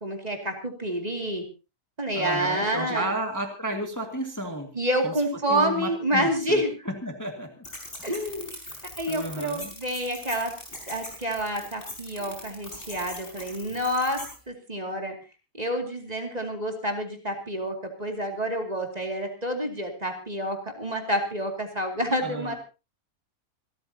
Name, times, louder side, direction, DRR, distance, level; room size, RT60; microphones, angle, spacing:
voice 1, 0.0-1.4 2.0-3.1 4.7-6.7 8.0-8.5 9.0-10.5 10.9-15.2 15.5-22.6, equal, 25° right, 3 dB, 2.6 m, -28 dB
voice 2, 2.1-4.7 5.0-5.1 5.5-6.6 6.9-7.7 8.0-8.1 9.1-9.7 22.1-22.5, right 1 dB, 10° left, 3 dB, 1.9 m, -32 dB
sound 1, 7.6-14.3, left 1 dB, 35° left, 5.4 m, -41 dB
27.0 x 13.0 x 2.8 m, 0.30 s
omnidirectional pair, 1.6 m